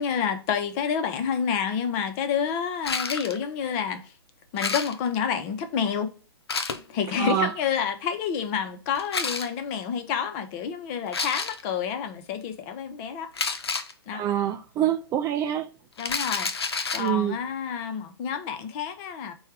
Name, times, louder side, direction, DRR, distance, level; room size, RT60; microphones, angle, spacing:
voice 1, 0.0-4.1 4.5-6.1 6.9-13.3 14.1-14.2 16.0-19.3, left 7 dB, 40° left, 0.7 m, -29 dB
sound 1, 2.8-3.4 4.6-5.2 6.5-6.8 9.0-9.5 11.1-11.7 13.3-13.9 16.0-17.1, left 4 dB, 80° left, 0.6 m, -29 dB
voice 2, 7.1-7.5 14.1-15.7 17.0-17.4, right 10 dB, 25° right, 0.3 m, -25 dB
4.4 x 2.3 x 4.7 m
figure-of-eight pair, 115°, 13 cm